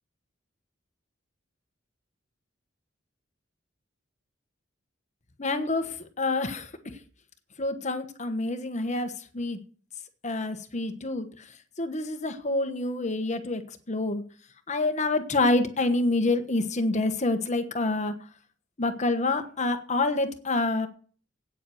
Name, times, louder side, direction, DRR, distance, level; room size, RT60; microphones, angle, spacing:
voice 1, 5.4-7.0 7.6-9.6 10.2-14.2 14.7-18.1 18.8-20.9, left 2 dB, 40° left, 8 dB, 1.2 m, -27 dB
9.0 x 7.7 x 7.7 m, 0.41 s
head